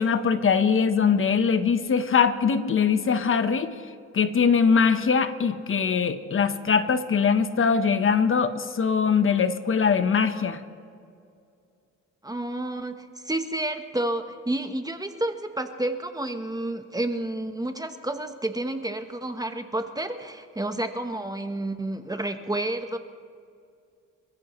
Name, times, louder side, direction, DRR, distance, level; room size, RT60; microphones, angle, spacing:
voice 1, 0.0-3.7 4.1-10.6, left 6 dB, 45° left, 9 dB, 1.1 m, -22 dB
voice 2, 12.2-23.0, right 1 dB, 10° right, 7 dB, 1.1 m, -30 dB
27.0 x 14.5 x 3.2 m, 2.3 s
cardioid pair, 90°, 30 cm